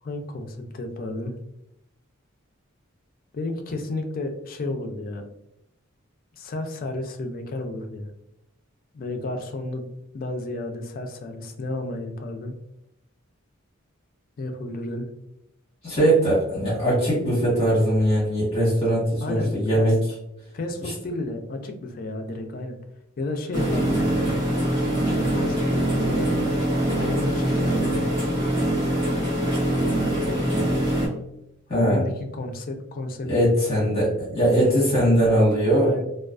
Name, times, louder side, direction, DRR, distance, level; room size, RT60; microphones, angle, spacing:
voice 1, 0.0-1.3 3.3-5.3 6.4-8.1 8.9-12.5 14.4-15.1 19.2-19.9 20.5-22.8 23.2-24.4 24.8-26.5 26.9-28.1 30.3-30.6 31.7-33.3 35.8-36.0, left 2 dB, 45° left, 5 dB, 0.4 m, -32 dB
voice 2, 15.8-20.0 31.7-32.0 33.2-35.9, right 1 dB, 30° left, -8 dB, 1.0 m, -20 dB
sound 1, 23.5-31.1, right 1 dB, 55° right, 1.1 m, -23 dB
2.3 x 2.3 x 2.3 m, 0.84 s
head